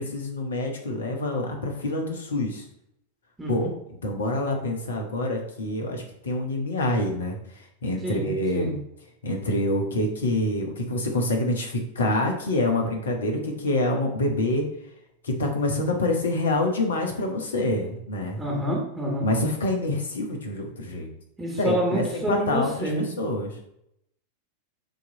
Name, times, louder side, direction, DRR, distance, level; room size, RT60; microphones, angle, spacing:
voice 1, 0.0-2.6 3.5-3.7 4.0-8.8 9.2-14.7 15.2-18.4 19.2-21.1 21.6-23.7, left 1 dB, 65° left, 2 dB, 1.4 m, -26 dB
voice 2, 3.4-3.7 8.0-8.7 18.4-19.3 21.4-23.1, right 1 dB, 10° right, -2 dB, 1.6 m, -28 dB
6.7 x 3.2 x 5.2 m, 0.77 s
figure-of-eight pair, 90°, 0 cm